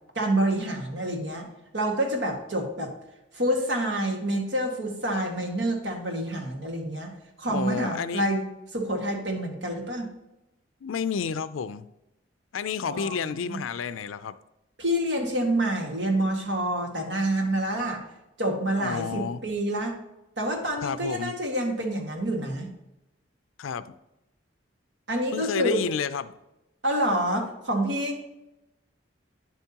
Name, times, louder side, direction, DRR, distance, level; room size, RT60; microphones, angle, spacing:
voice 1, 0.2-1.5 1.7-2.9 3.3-7.1 7.4-8.5 8.7-10.1 12.8-13.6 14.8-18.0 18.4-19.9 20.4-22.7 25.1-25.9 26.8-28.3, right 1 dB, 65° right, 2 dB, 1.8 m, -27 dB
voice 2, 7.5-8.2 10.8-11.9 12.5-14.4 18.8-19.4 20.8-21.3 23.6-23.9 25.3-26.3, left 6 dB, 90° left, 14 dB, 0.4 m, -30 dB
9.5 x 8.1 x 2.9 m, 0.93 s
head